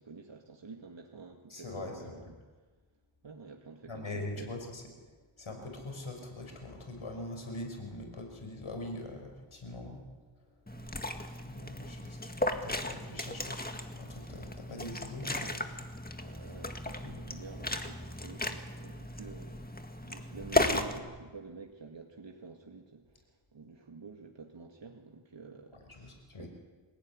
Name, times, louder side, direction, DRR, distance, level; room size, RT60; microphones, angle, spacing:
voice 1, 0.0-2.2 3.2-4.6 10.8-11.0 11.3-12.7 15.0-15.7 16.2-19.5 20.0-23.0 23.5-26.5, right 4 dB, 65° right, 2 dB, 2.2 m, -49 dB
voice 2, 1.5-2.2 3.9-4.8 5.4-10.0 10.5-10.6 11.4-15.5 25.7-26.5, left 2 dB, 85° left, 3 dB, 5.8 m, -42 dB
Liquid, 10.7-21.0, left 1 dB, 20° left, 1.9 m, -35 dB
26.5 x 17.0 x 9.8 m, 1.4 s
wide cardioid pair, 80°, 48 cm